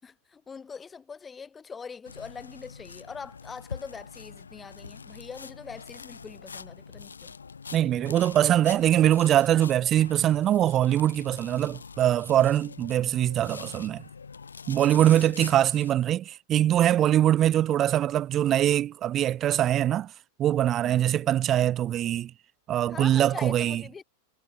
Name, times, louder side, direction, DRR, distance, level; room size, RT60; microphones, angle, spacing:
voice 1, 0.0-7.4 14.7-15.4 20.8-21.3 22.9-24.0, left 5 dB, 15° left, 5.8 m, -43 dB
sound 1, 2.1-15.9, left 5 dB, 75° left, 6.8 m, -44 dB
voice 2, 7.7-14.0 14.7-20.1 20.4-22.3 22.7-23.8, right 11 dB, 30° right, 0.3 m, -23 dB
figure-of-eight pair, 90°, 0 cm